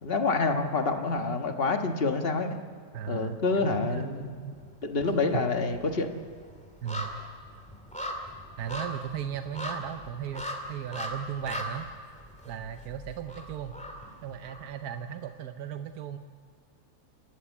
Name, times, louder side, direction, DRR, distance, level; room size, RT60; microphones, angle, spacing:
voice 1, 0.0-2.5 3.1-4.3 4.8-6.1, left 3 dB, 40° left, 5 dB, 1.7 m, -27 dB
voice 2, 2.9-4.6 5.3-5.4 6.8-7.2 8.6-11.9 12.5-13.8 14.2-16.2, right 9 dB, 80° right, 7 dB, 1.4 m, -36 dB
sound 1, 4.0-4.7 5.0-15.0 15.3-15.4, equal, 5° left, 2.7 m, -40 dB
29.5 x 13.5 x 8.5 m, 2.2 s
omnidirectional pair, 1.6 m